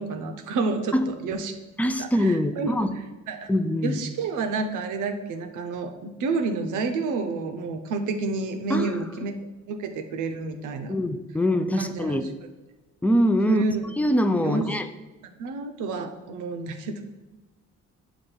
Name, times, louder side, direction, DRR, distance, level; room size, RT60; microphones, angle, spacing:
voice 1, 0.0-1.5 2.0-2.7 3.3-3.5 3.8-9.4 9.7-11.0 11.8-12.2 13.5-13.8 14.4-14.6 15.2-17.0, right 4 dB, 80° right, 6 dB, 0.8 m, -29 dB
voice 2, 1.8-3.0 3.5-4.0 8.7-9.1 10.9-12.3 13.0-13.6 14.0-14.9, equal, 5° left, 9 dB, 0.4 m, -23 dB
7.0 x 2.6 x 5.4 m, 1.2 s
cardioid pair, 90°, 30 cm